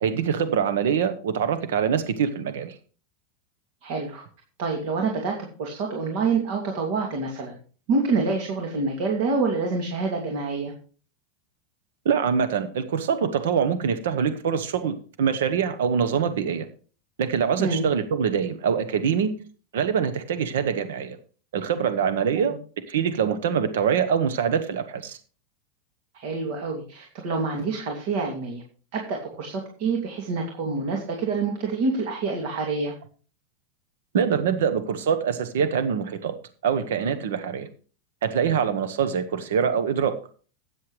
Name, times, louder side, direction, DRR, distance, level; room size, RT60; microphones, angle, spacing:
voice 1, 0.0-2.8 12.0-16.7 17.2-19.3 19.7-21.2 21.5-22.6 22.9-25.2 34.1-36.3 36.6-37.7 38.2-40.1, right 7 dB, 85° right, 10 dB, 1.0 m, -24 dB
voice 2, 3.8-4.2 4.6-7.6 7.9-10.7 17.6-17.8 22.4-22.6 26.1-28.6 28.9-32.9, right 4 dB, 60° right, 1 dB, 2.6 m, -27 dB
13.0 x 9.5 x 3.3 m, 0.40 s
supercardioid pair, 140°, 0 cm